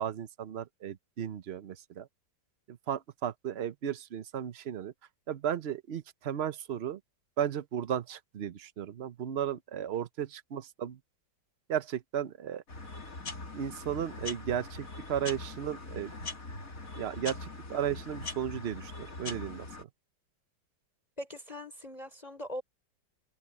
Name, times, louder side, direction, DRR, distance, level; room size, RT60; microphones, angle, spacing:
voice 1, 0.0-2.1 2.7-4.9 5.3-7.0 7.4-11.0 11.7-12.6 13.5-16.1 17.0-19.9, right 9 dB, 55° right, 0.7 m, -35 dB
sound 1, 12.7-19.8, left 3 dB, 45° left, 3.2 m, -42 dB
voice 2, 21.2-22.6, left 1 dB, 20° left, 4.2 m, -41 dB
omnidirectional pair, 2.0 m